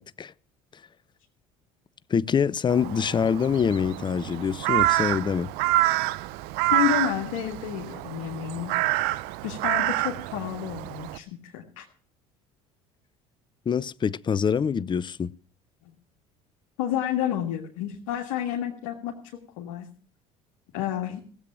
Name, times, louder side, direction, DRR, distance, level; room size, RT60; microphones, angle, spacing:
voice 1, 2.1-5.5 13.7-15.3, left 7 dB, 30° left, 0.6 m, -25 dB
Crow, 2.7-11.2, right 16 dB, 70° right, 0.7 m, -27 dB
voice 2, 6.7-8.7 9.4-11.9 16.8-19.1 19.6-19.9 20.7-21.2, left 11 dB, 80° left, 1.9 m, -30 dB
16.0 x 7.9 x 8.6 m
hypercardioid pair, 70°, 17 cm